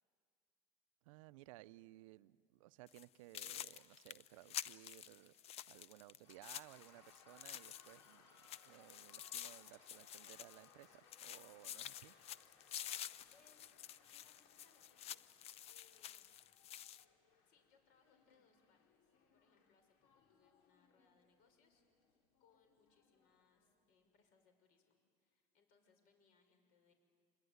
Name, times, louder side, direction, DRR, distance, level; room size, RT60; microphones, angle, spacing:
voice 1, 1.0-5.3 5.7-8.3 8.7-12.1, right 18 dB, 90° right, 0.6 m, -59 dB
sound 1, 2.7-13.7, equal, 10° left, 5.8 m, -79 dB
sound 2, 2.9-3.0 3.3-8.1 8.4-10.9 11.1-17.0, left 11 dB, 40° left, 0.6 m, -50 dB
sound 3, 6.2-23.9, left 5 dB, 80° left, 3.8 m, -69 dB
voice 2, 13.0-15.2 15.6-16.3 17.5-22.1 22.4-26.9, left 5 dB, 60° left, 5.7 m, -75 dB
26.0 x 21.0 x 9.5 m
supercardioid pair, 130°, 17 cm